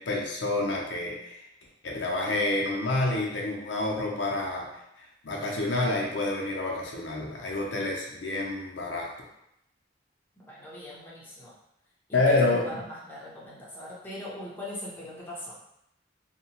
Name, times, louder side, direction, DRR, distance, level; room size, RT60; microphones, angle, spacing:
voice 1, 0.0-1.4 1.8-4.7 5.0-9.1 12.1-12.6, left 2 dB, 70° left, -2 dB, 0.5 m, -28 dB
voice 2, 10.4-11.5 12.1-15.5, left 1 dB, 10° left, -7 dB, 0.6 m, -40 dB
2.7 x 2.2 x 2.8 m, 0.80 s
head